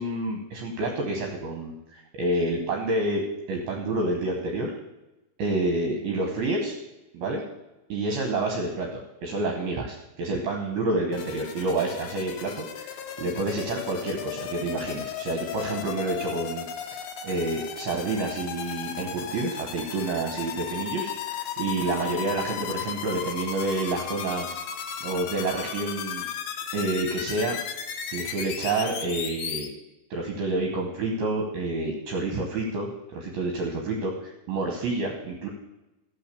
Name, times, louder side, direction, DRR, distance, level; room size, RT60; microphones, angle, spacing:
voice 1, 0.0-3.2 3.5-4.7 5.4-6.7 7.1-7.4 7.9-16.7 17.2-24.5 25.0-26.2 26.7-27.6 28.1-29.7 30.1-35.5, right 2 dB, 70° right, 2 dB, 2.5 m, -29 dB
sound 1, 11.1-29.7, left 8 dB, 85° left, 2.0 m, -35 dB
13.5 x 5.7 x 6.8 m, 1.0 s
omnidirectional pair, 5.4 m